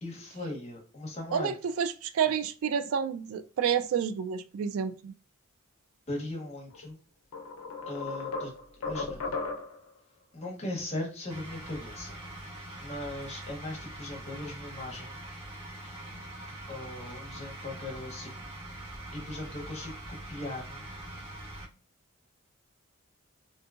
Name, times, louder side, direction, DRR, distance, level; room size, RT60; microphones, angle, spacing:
voice 1, 0.0-1.5 2.3-2.4 6.1-7.0 7.8-8.5 8.8-9.2 10.3-12.2 12.8-15.1 16.7-18.5 19.1-20.8, left 2 dB, 30° left, 0.9 m, -38 dB
voice 2, 1.3-5.1, right 7 dB, 70° right, 0.3 m, -29 dB
sound 1, 6.7-6.9 7.3-9.9, left 3 dB, 80° left, 0.6 m, -36 dB
sound 2, 11.3-21.6, right 1 dB, 25° right, 1.1 m, -43 dB
3.7 x 2.6 x 2.4 m
head